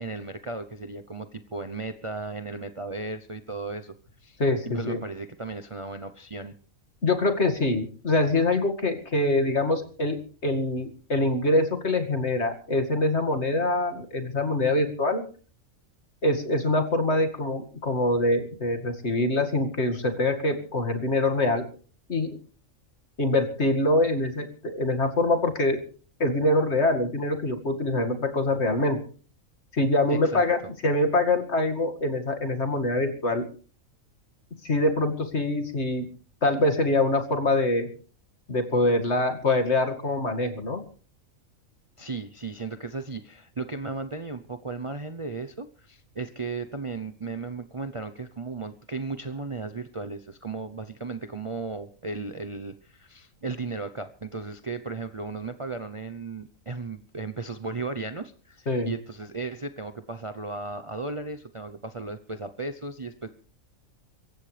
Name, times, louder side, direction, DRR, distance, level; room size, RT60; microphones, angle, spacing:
voice 1, 0.0-4.0 4.2-4.4 4.7-6.5 30.1-30.4 42.0-63.3, right 3 dB, 30° right, 9 dB, 0.7 m, -35 dB
voice 2, 4.4-5.0 7.0-10.2 10.4-15.2 16.2-21.7 22.1-22.4 23.2-25.8 26.2-29.0 29.7-33.4 34.6-36.1 36.4-37.9 38.5-40.8 58.7-58.9, left 2 dB, 50° left, 6 dB, 2.5 m, -24 dB
25.0 x 15.0 x 3.4 m, 0.41 s
omnidirectional pair, 1.4 m